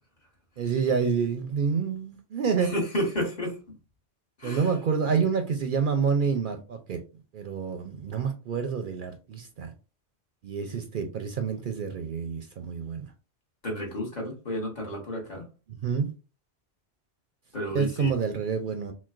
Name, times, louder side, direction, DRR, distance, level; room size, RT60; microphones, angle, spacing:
voice 1, 0.6-2.7 4.4-7.0 7.3-9.7 10.4-13.1 15.8-16.1 17.7-18.9, right 6 dB, 60° right, 0.6 m, -28 dB
voice 2, 2.6-3.8 4.4-4.7 5.1-5.2 13.6-15.5 17.5-18.1, left 1 dB, 45° left, 1.3 m, -31 dB
5.9 x 2.2 x 2.4 m
omnidirectional pair, 1.1 m